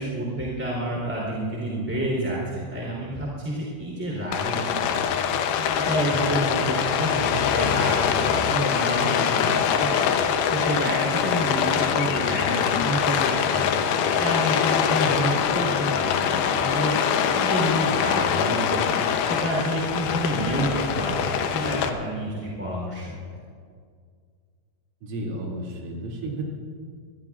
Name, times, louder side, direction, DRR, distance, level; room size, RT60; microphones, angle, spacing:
voice 1, 0.0-9.6 10.0-10.1 10.5-23.0, equal, 5° right, -4 dB, 2.7 m, -29 dB
Rain, 4.3-21.9, left 8 dB, 85° left, 2.1 m, -24 dB
voice 2, 25.0-26.4, right 2 dB, 85° right, -3 dB, 5.3 m, -32 dB
24.5 x 21.5 x 2.5 m, 2.1 s
omnidirectional pair, 5.5 m